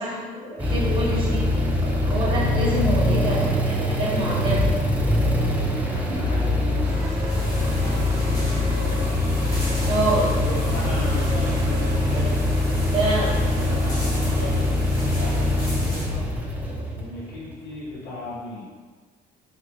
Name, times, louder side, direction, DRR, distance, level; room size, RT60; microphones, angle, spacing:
voice 1, 0.0-4.7 9.8-10.3 12.9-13.4, right 1 dB, 30° right, -8 dB, 1.4 m, -26 dB
sound 1, 0.6-17.8, left 1 dB, 10° right, 0.4 m, -23 dB
sound 2, 4.4-14.0, equal, 80° right, 0.8 m, -38 dB
voice 2, 5.9-7.5 7.7-9.2 10.1-12.4 13.4-16.3 16.9-18.7, left 1 dB, 75° left, -8 dB, 1.4 m, -37 dB
sound 3, 7.3-16.1, left 1 dB, 20° left, 1.1 m, -37 dB
3.7 x 2.4 x 3.0 m, 1.5 s
cardioid pair, 110°, 17 cm